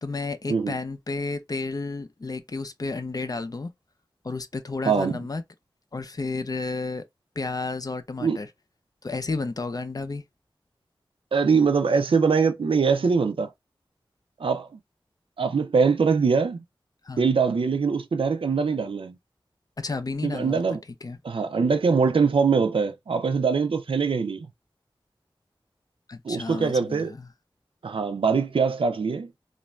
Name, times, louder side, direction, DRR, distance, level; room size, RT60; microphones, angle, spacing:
voice 1, 0.0-3.7 4.2-5.4 5.9-7.1 7.4-8.5 9.0-10.2 17.0-17.3 19.8-21.2 26.1-27.3, left 3 dB, 45° left, 0.4 m, -32 dB
voice 2, 4.9-5.2 8.2-8.4 11.3-13.5 14.4-14.7 15.4-16.6 17.2-19.1 20.2-20.8 21.2-24.5 26.2-27.1 27.8-29.3, right 5 dB, 80° right, 0.4 m, -23 dB
2.4 x 2.2 x 3.0 m
wide cardioid pair, 70°, 9 cm